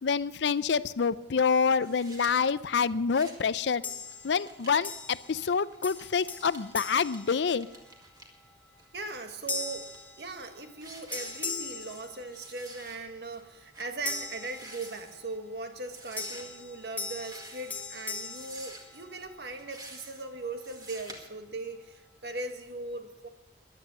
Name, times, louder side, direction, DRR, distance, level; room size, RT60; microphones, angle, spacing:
voice 1, 0.0-3.8 4.2-7.7, left 5 dB, 80° left, 17 dB, 0.5 m, -27 dB
sound 1, 1.8-2.3 2.9-3.5 3.8-8.2 8.8-10.0 10.4-10.6 10.8-12.1 12.3-13.0 13.3-13.4 13.7-13.9 14.3-15.2 15.9-16.4 17.1-17.8 18.3-19.0 19.6-20.2 20.6-21.2, right 2 dB, 20° right, 1.9 m, -49 dB
sound 2, 3.8-4.5 4.8-5.5 5.8-8.0 8.5-8.8 9.5-10.8 11.1-12.7 14.0-15.2 16.2-19.4, left 4 dB, 10° left, 1.2 m, -40 dB
voice 2, 8.9-9.9 10.2-23.3, right 2 dB, 65° right, 6 dB, 1.6 m, -39 dB
14.5 x 10.5 x 6.7 m, 0.97 s
head